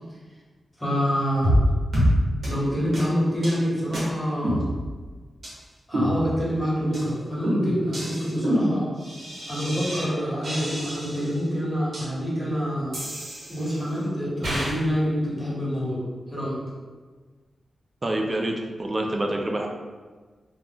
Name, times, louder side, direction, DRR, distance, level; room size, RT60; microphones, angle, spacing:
voice 1, 0.8-1.5 2.4-4.6 5.9-8.9 9.5-13.0 13.5-16.0 16.3-16.6, equal, 10° left, -7 dB, 1.2 m, -26 dB
sound 1, 1.4-1.7 1.9-2.1 2.4-2.5 2.9-3.0 3.4-3.6 3.9-4.0 4.4-5.1 5.4-5.5 5.9-6.6 6.9-7.1 7.4-10.1 10.4-11.3 11.9-12.0 12.9-13.9 14.4-14.8, equal, 75° right, 1.0 m, -26 dB
voice 2, 18.0-19.7, right 1 dB, 35° right, 2 dB, 0.4 m, -27 dB
2.4 x 2.2 x 3.4 m, 1.4 s
cardioid pair, 75°, 0 cm